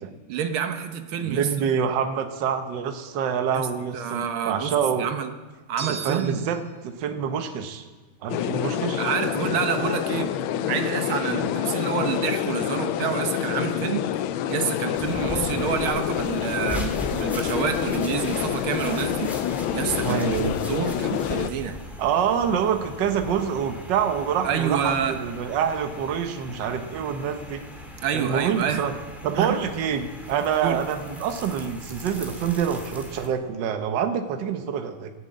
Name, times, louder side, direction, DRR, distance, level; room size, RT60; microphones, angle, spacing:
voice 1, 0.3-1.7 3.5-3.7 3.9-5.3 5.7-6.5 9.0-10.3 10.6-14.1 14.5-19.3 19.7-20.4 20.7-21.8 24.4-25.2 28.0-28.9 29.3-29.6 30.6-30.8, right 8 dB, 85° right, 7 dB, 1.8 m, -28 dB
voice 2, 1.2-5.1 5.8-7.8 8.2-9.0 11.4-11.5 20.0-20.6 22.0-27.6 28.1-28.9 29.2-35.1, right 7 dB, 65° right, 7 dB, 1.6 m, -26 dB
sound 1, 5.8-6.7, right 5 dB, 45° right, 0.4 m, -37 dB
sound 2, 8.3-21.5, left 10 dB, 85° left, 1.4 m, -27 dB
sound 3, 14.9-33.3, equal, ahead, 1.6 m, -39 dB
15.5 x 7.2 x 8.5 m, 1.3 s
omnidirectional pair, 2.2 m